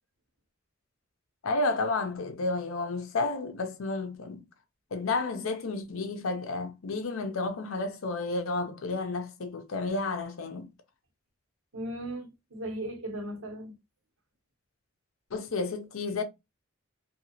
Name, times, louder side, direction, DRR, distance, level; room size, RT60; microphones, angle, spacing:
voice 1, 1.4-4.5 4.9-10.7 15.3-16.2, left 3 dB, 85° left, 0.6 m, -31 dB
voice 2, 11.7-13.7, right 1 dB, 75° right, 0.9 m, -37 dB
2.7 x 2.3 x 2.8 m
head